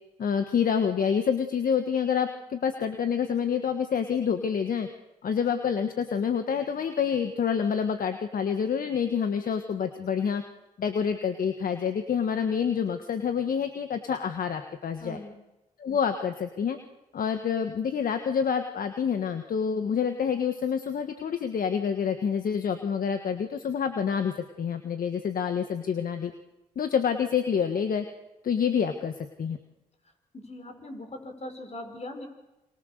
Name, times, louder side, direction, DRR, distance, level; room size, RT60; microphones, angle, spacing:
voice 1, 0.2-4.9 5.2-10.4 10.8-15.2 15.8-16.8 17.1-26.3 26.8-28.1 28.4-29.1 29.4-29.6, left 7 dB, 65° left, 8 dB, 1.6 m, -27 dB
voice 2, 15.0-15.4 30.3-32.3, left 1 dB, 45° left, 5 dB, 5.5 m, -40 dB
27.5 x 24.5 x 6.7 m, 0.98 s
supercardioid pair, 50°, 16 cm